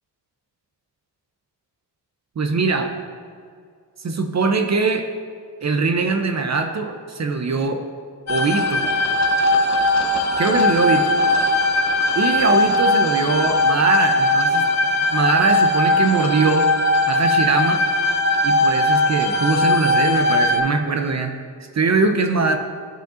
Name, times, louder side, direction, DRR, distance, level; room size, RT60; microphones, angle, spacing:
voice 1, 2.4-2.9 4.0-5.1 5.6-7.9 8.3-8.8 10.4-11.1 12.1-14.7 15.1-16.7 17.1-17.8 18.4-21.3 21.6-22.6, right 4 dB, 40° right, 5 dB, 0.6 m, -21 dB
sound 1, 8.3-20.6, left 1 dB, 40° left, 0.8 m, -19 dB
12.0 x 5.1 x 2.5 m, 2.1 s
cardioid pair, 80°, 42 cm